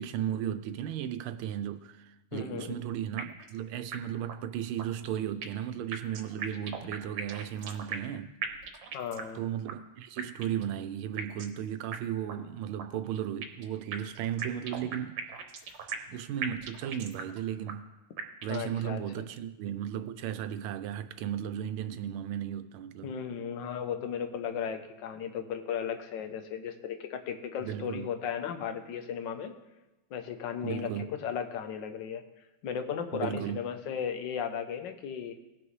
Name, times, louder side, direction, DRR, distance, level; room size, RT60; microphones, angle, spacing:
voice 1, 0.0-8.3 9.3-15.2 16.1-17.9 18.4-23.1 27.6-28.1 30.6-31.1 33.1-33.6, right 10 dB, 85° right, 1.5 m, -35 dB
voice 2, 2.3-2.8 8.9-9.4 18.5-19.0 23.0-29.5 30.1-32.2 32.6-35.3, left 8 dB, 70° left, 1.4 m, -35 dB
sound 1, 3.2-3.6 3.9-4.0 4.3-4.4 4.8-5.6 5.9-8.1 8.4-9.4 9.7-9.8 10.2-10.7 11.2-11.6 11.9-12.0 12.3-12.4 12.8-13.6 13.9-16.1 16.4-17.4 17.7-17.8 18.2-18.7, right 6 dB, 70° right, 1.5 m, -38 dB
18.0 x 6.0 x 3.1 m
omnidirectional pair, 2.2 m